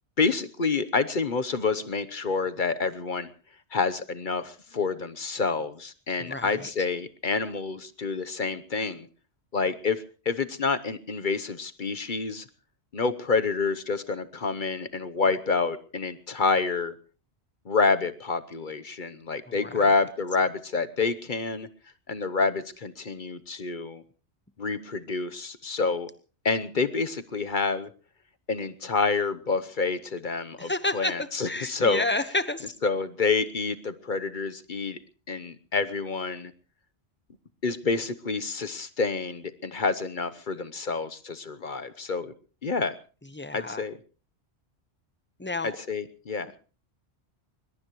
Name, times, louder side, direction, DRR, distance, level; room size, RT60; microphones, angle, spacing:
voice 1, 0.2-3.3 3.7-9.1 9.5-12.4 12.9-16.9 17.7-21.7 22.1-24.0 24.6-26.1 26.4-27.9 28.5-32.0 32.8-35.0 35.3-36.5 37.6-42.3 42.6-42.9 43.5-43.9 45.6-46.5, left 4 dB, 50° left, 12 dB, 1.0 m, -28 dB
voice 2, 6.2-6.7 19.5-19.8 30.6-32.7 43.3-43.8 45.4-45.8, left 2 dB, 10° left, 13 dB, 1.0 m, -31 dB
22.0 x 21.0 x 3.1 m, 0.37 s
omnidirectional pair, 1.1 m